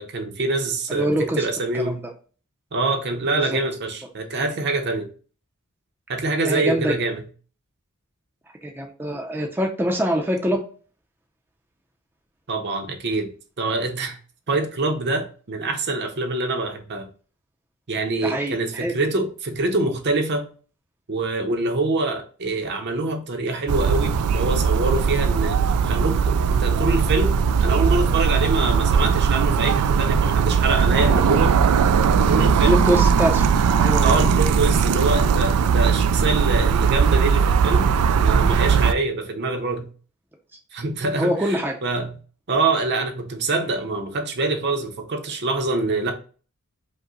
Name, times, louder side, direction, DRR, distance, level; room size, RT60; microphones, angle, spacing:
voice 1, 0.0-2.0 2.7-5.1 6.1-7.2 12.5-13.3 13.6-14.2 14.5-17.1 17.9-20.5 21.1-25.6 25.8-27.3 27.6-31.6 32.0-32.8 34.0-37.9 38.2-39.9 40.7-42.1 42.5-46.1, right 2 dB, 50° right, 4 dB, 0.7 m, -25 dB
voice 2, 0.9-1.4 1.7-2.0 3.4-3.6 6.5-6.9 8.6-10.6 18.2-18.9 32.6-33.5 33.8-34.1 41.2-41.7, equal, 10° right, 0 dB, 0.5 m, -24 dB
Omni Ambiental Sidewalk, 23.7-38.9, right 6 dB, 80° right, 0.3 m, -19 dB
5.2 x 2.1 x 3.8 m, 0.38 s
head